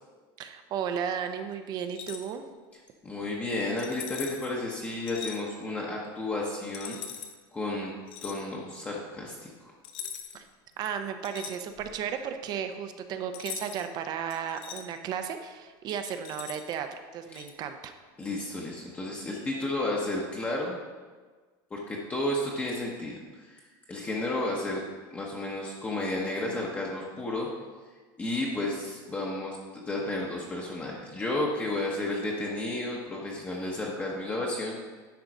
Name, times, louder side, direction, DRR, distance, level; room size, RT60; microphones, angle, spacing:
voice 1, 0.4-2.4 10.3-10.4 10.8-17.9, right 8 dB, 40° right, 8 dB, 0.6 m, -34 dB
sound 1, 1.9-2.3 3.8-4.5 5.1-5.4 6.7-7.3 8.1-8.4 9.8-10.5 10.8-12.0 13.3-13.9 14.3-14.8 15.9-16.7 17.3-17.5, left 8 dB, 50° left, 0.8 m, -41 dB
voice 2, 3.0-7.0 7.5-7.9 8.2-9.7 17.3-17.4 18.2-20.8 21.7-23.6 23.9-24.8 25.1-27.5 28.2-34.8, left 2 dB, 15° left, -3 dB, 0.9 m, -32 dB
10.5 x 3.9 x 6.0 m, 1.4 s
cardioid pair, 160°, 11 cm